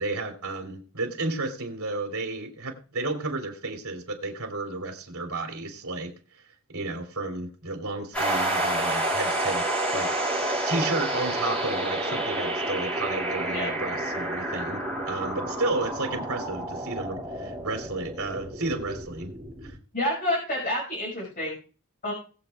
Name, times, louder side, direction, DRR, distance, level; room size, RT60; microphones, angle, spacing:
voice 1, 0.0-6.4 6.7-9.7 9.9-19.3 19.6-19.8, right 2 dB, 80° right, 2 dB, 3.0 m, -32 dB
sound 1, 8.1-19.7, right 1 dB, 5° left, 6.4 m, -29 dB
voice 2, 19.9-21.5 22.0-22.1, left 1 dB, 40° left, -3 dB, 5.4 m, -28 dB
21.0 x 8.1 x 2.4 m, 0.37 s
head